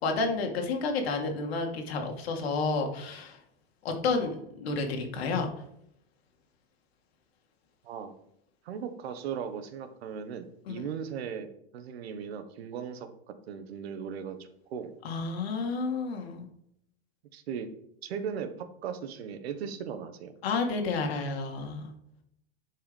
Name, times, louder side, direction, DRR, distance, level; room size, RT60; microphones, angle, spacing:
voice 1, 0.0-3.4 3.8-5.5 10.8-10.9 15.0-16.5 20.4-21.9, left 4 dB, 75° left, 3 dB, 2.2 m, -30 dB
voice 2, 8.6-11.5 11.7-13.1 13.5-14.9 17.3-17.7 18.0-20.3, right 7 dB, 80° right, 9 dB, 1.3 m, -37 dB
10.5 x 4.8 x 5.3 m, 0.74 s
supercardioid pair, 180°, 31 cm